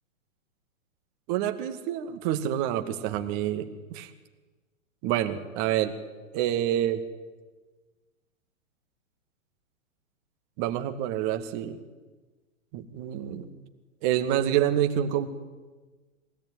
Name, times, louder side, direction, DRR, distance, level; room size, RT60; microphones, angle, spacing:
voice 1, 1.3-4.1 5.0-5.9 6.3-7.0 10.6-11.8 12.7-13.5 14.0-15.3, right 11 dB, 40° right, 7 dB, 2.2 m, -27 dB
23.0 x 17.5 x 9.6 m, 1.3 s
figure-of-eight pair, 110°, 40 cm